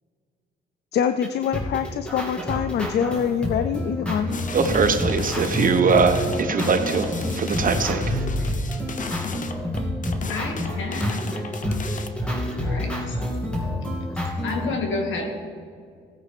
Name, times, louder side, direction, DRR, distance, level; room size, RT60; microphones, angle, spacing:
voice 1, 0.9-4.3, left 8 dB, 55° left, 10 dB, 0.5 m, -25 dB
sound 1, 1.2-14.7, equal, 5° left, 2.4 m, -28 dB
sound 2, 4.3-12.1, left 4 dB, 40° left, 0.9 m, -33 dB
voice 2, 4.5-8.2, right 5 dB, 45° right, 8 dB, 1.0 m, -22 dB
voice 3, 10.3-11.4 12.5-13.2 14.4-15.3, left 3 dB, 75° left, 3 dB, 2.0 m, -30 dB
16.0 x 9.1 x 3.4 m, 2.2 s
cardioid pair, 90°, 20 cm